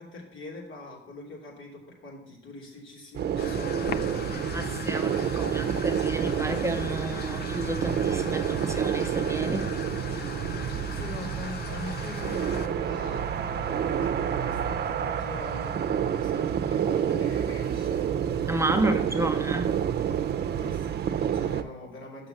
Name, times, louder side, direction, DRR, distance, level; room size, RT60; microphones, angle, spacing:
voice 1, 0.0-3.9 4.8-5.8 10.9-18.1 18.7-19.2 20.6-22.3, left 2 dB, 75° left, -2 dB, 3.0 m, -43 dB
sound 1, 3.1-21.6, right 9 dB, 55° right, 0.6 m, -29 dB
sound 2, 3.4-12.7, left 8 dB, 55° left, 0.5 m, -39 dB
voice 2, 4.5-9.7 18.5-19.8, right 1 dB, 15° right, 5 dB, 0.8 m, -31 dB
6.5 x 5.9 x 6.6 m, 0.78 s
cardioid pair, 90°, 20 cm